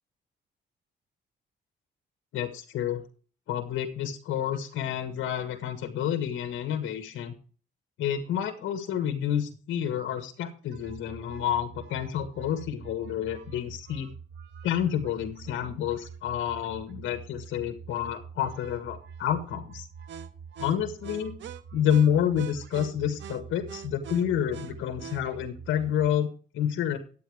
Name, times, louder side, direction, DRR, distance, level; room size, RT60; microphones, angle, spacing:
voice 1, 2.3-3.0 3.5-7.3 8.0-14.1 14.6-19.9 20.6-21.4 21.7-27.0, left 9 dB, 80° left, 7 dB, 1.7 m, -29 dB
sound 1, 10.7-26.1, right 7 dB, 70° right, 1.4 m, -44 dB
11.5 x 9.0 x 4.9 m, 0.41 s
cardioid pair, 90°, 20 cm